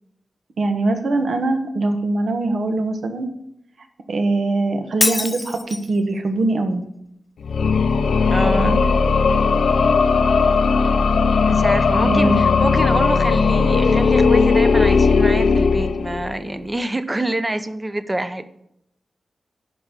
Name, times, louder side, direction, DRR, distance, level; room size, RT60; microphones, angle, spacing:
voice 1, 0.6-3.3 4.1-6.8 8.5-8.8 12.0-12.4, right 2 dB, 65° right, 6 dB, 1.4 m, -22 dB
Shatter, 5.0-6.0, left 3 dB, 30° left, 0.3 m, -23 dB
sound 1, 7.4-16.5, left 4 dB, 90° left, 0.8 m, -17 dB
voice 2, 8.3-8.8 11.5-18.5, right 1 dB, 20° right, 11 dB, 0.8 m, -26 dB
10.5 x 5.4 x 8.3 m, 0.78 s
wide cardioid pair, 125°, 0 cm